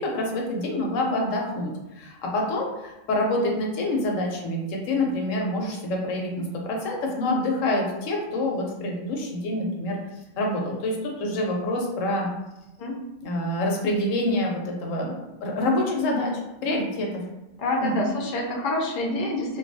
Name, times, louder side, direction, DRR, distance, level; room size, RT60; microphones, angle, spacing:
voice 1, 0.0-10.0 10.4-12.3 13.2-16.3 16.6-17.2 17.8-18.1, left 1 dB, 85° left, 0 dB, 1.0 m, -26 dB
voice 2, 17.6-19.6, left 1 dB, 60° left, 0 dB, 0.6 m, -27 dB
2.6 x 2.3 x 2.6 m, 0.95 s
omnidirectional pair, 1.3 m